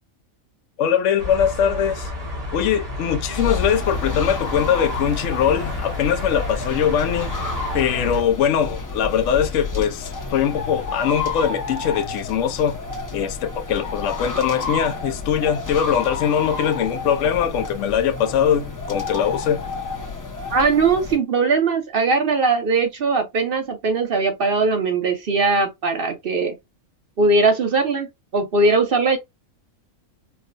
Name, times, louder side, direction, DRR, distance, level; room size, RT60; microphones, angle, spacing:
voice 1, 0.8-2.1 2.5-7.3 7.7-12.9 13.1-19.6, left 8 dB, 65° left, 0.8 m, -21 dB
sound 1, 1.2-8.2, left 1 dB, 75° right, 1.8 m, -31 dB
sound 2, 3.3-21.2, left 4 dB, 20° left, 0.5 m, -30 dB
voice 2, 20.5-26.5 27.2-28.1 28.3-29.2, right 3 dB, 55° right, 0.7 m, -20 dB
4.4 x 2.1 x 2.5 m
omnidirectional pair, 1.5 m